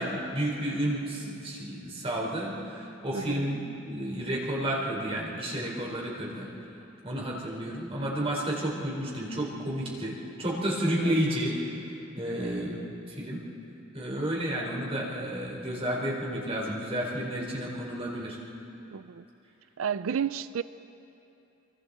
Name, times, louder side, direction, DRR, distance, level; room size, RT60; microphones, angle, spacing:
voice 1, 0.0-6.5 7.0-11.5 12.2-12.8 13.1-13.4 13.9-18.4, right 1 dB, 30° right, -3 dB, 4.5 m, -31 dB
voice 2, 3.1-3.5 11.0-11.1 12.8-12.9 18.9-19.2 19.8-20.6, right 7 dB, 85° right, 14 dB, 0.4 m, -32 dB
30.0 x 23.5 x 4.3 m, 2.9 s
head